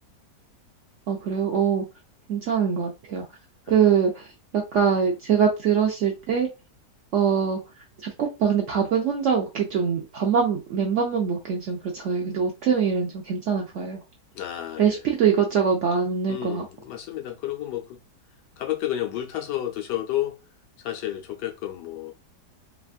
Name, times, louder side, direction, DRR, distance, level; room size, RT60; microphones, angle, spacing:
voice 1, 1.1-1.9 2.3-3.3 3.7-4.3 4.5-6.5 7.1-7.6 8.0-14.0 14.8-16.6, right 7 dB, 70° right, 0.7 m, -23 dB
voice 2, 14.3-15.0 16.3-18.0 18.6-20.4 20.8-22.1, left 12 dB, 90° left, 1.3 m, -31 dB
3.4 x 2.3 x 2.4 m
omnidirectional pair, 1.8 m